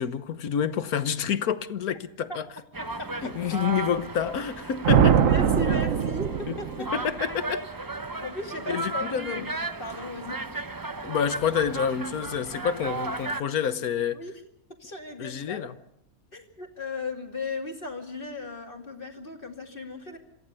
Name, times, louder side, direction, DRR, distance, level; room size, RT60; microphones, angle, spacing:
voice 1, 0.0-2.4 3.2-5.2 6.5-7.7 8.7-9.5 11.0-14.3 15.2-15.7, left 8 dB, 75° left, 1.5 m, -28 dB
sound 1, 2.7-13.4, right 3 dB, 20° right, 0.6 m, -35 dB
sound 2, 4.8-7.1, right 8 dB, 60° right, 1.3 m, -22 dB
voice 2, 5.2-6.9 8.2-9.5 9.8-10.4 14.1-14.3 14.8-15.7 16.3-20.2, left 2 dB, 35° left, 2.8 m, -36 dB
27.0 x 15.0 x 6.9 m
omnidirectional pair, 1.6 m